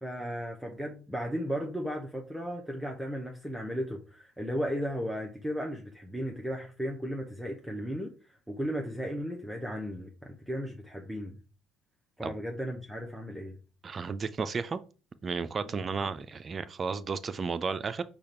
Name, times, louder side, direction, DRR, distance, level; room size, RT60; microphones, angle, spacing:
voice 1, 0.0-11.4 12.2-13.6 15.6-15.7, equal, 5° right, 0.8 m, -35 dB
voice 2, 13.8-14.8 15.2-18.0, right 5 dB, 40° right, 0.5 m, -33 dB
5.0 x 2.4 x 4.3 m
supercardioid pair, 70°, 0 cm